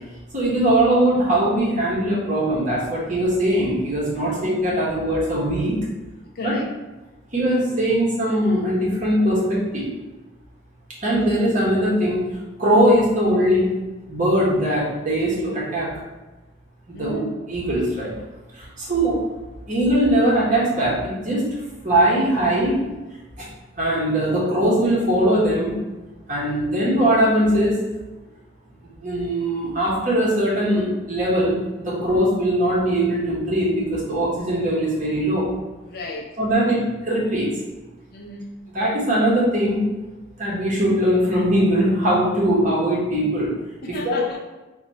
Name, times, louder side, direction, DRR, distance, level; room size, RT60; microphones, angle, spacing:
voice 1, 0.3-5.8 6.4-6.5 7.3-9.8 11.0-12.3 12.6-13.7 14.1-15.9 16.9-17.2 17.5-18.1 18.6-19.2 19.7-21.4 21.8-22.8 23.4-23.5 23.8-25.8 26.3-27.8 29.0-35.5 36.4-37.5 38.7-39.8 40.4-43.5 43.9-44.2, right 1 dB, 40° right, -6 dB, 1.0 m, -20 dB
voice 2, 6.3-6.7 17.0-17.3 35.9-36.3 38.1-38.5 43.8-44.4, left 2 dB, 50° left, -1 dB, 0.5 m, -34 dB
3.0 x 2.3 x 4.0 m, 1.1 s
head